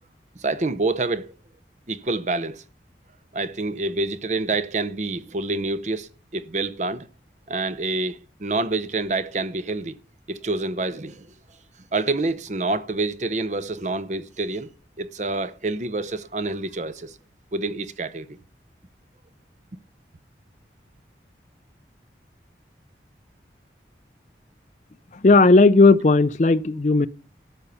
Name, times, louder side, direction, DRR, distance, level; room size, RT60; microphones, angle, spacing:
voice 1, 0.4-1.3 1.9-2.6 3.3-7.1 7.5-10.0 10.3-11.3 11.9-14.7 15.0-17.2 17.5-18.3, right 3 dB, 40° right, 0.7 m, -27 dB
voice 2, 25.2-27.1, left 3 dB, 40° left, 0.5 m, -15 dB
12.5 x 5.6 x 6.8 m
head